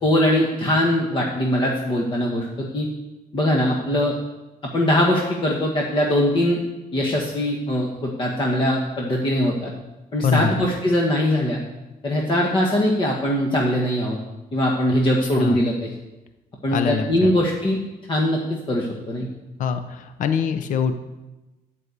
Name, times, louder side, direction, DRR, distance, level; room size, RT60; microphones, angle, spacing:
voice 1, 0.0-2.9 3.3-4.1 4.7-6.6 6.9-9.7 10.1-11.6 12.0-14.2 14.5-15.9 16.6-17.8 18.1-18.4 18.7-19.3, left 1 dB, 35° left, -1 dB, 1.3 m, -21 dB
voice 2, 10.2-10.5 15.4-15.6 16.7-17.3 19.6-21.0, left 6 dB, 60° left, 9 dB, 0.7 m, -24 dB
11.0 x 5.5 x 8.1 m, 1.1 s
cardioid pair, 160°, 15 cm